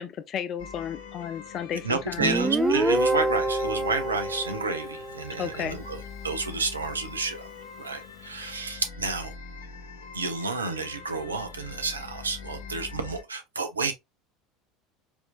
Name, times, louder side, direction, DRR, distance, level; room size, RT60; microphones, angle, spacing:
voice 1, 0.0-2.3 5.4-5.8, left 9 dB, 40° left, 0.5 m, -33 dB
sound 1, 0.6-13.2, left 6 dB, 70° left, 0.7 m, -43 dB
voice 2, 1.8-7.4 7.8-9.3 10.1-13.9, right 4 dB, 80° right, 0.6 m, -30 dB
Guitar, 2.2-5.7, right 2 dB, 10° right, 0.5 m, -26 dB
4.4 x 2.7 x 2.3 m
figure-of-eight pair, 70°, 0 cm